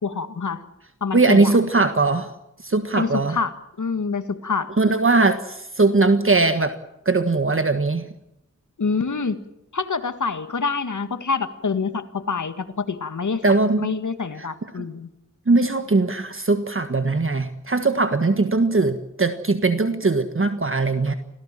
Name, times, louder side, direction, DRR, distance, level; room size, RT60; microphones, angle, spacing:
voice 1, 0.0-0.6 1.0-1.5 3.0-4.7 8.8-9.4 9.7-13.4 13.8-15.1, left 4 dB, 75° left, 10 dB, 1.9 m, -26 dB
voice 2, 1.1-2.3 2.6-3.4 4.8-6.7 7.0-8.0 13.4-13.9 14.4-14.5 14.7-14.9 15.5-21.1, right 3 dB, 45° right, 9 dB, 1.5 m, -20 dB
27.0 x 17.0 x 7.5 m, 0.88 s
wide cardioid pair, 60°, 30 cm